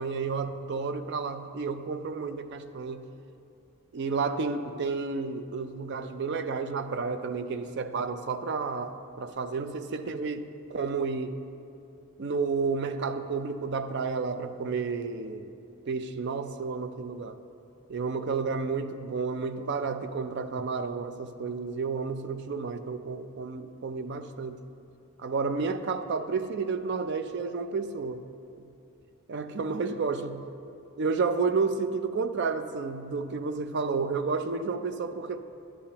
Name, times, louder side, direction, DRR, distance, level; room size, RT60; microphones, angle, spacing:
voice 1, 0.0-3.1 3.9-11.4 12.2-15.5 15.8-17.4 17.9-24.6 25.2-28.3 28.6-28.7 29.3-30.5 31.0-35.4, right 4 dB, 55° right, 10 dB, 0.4 m, -31 dB
11.0 x 8.4 x 2.9 m, 2.6 s
head